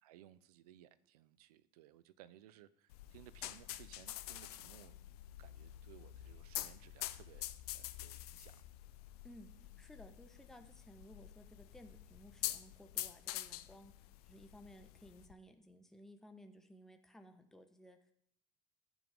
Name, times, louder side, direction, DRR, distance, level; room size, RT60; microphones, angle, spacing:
voice 1, 0.0-5.0 5.4-8.5, right 12 dB, 85° right, 16 dB, 0.5 m, -61 dB
sound 1, 2.9-15.3, left 15 dB, 85° left, 0.5 m, -47 dB
voice 2, 9.8-13.9 14.2-18.1, equal, ahead, 6 dB, 1.0 m, -58 dB
13.5 x 6.1 x 3.5 m, 0.69 s
hypercardioid pair, 75°, 19 cm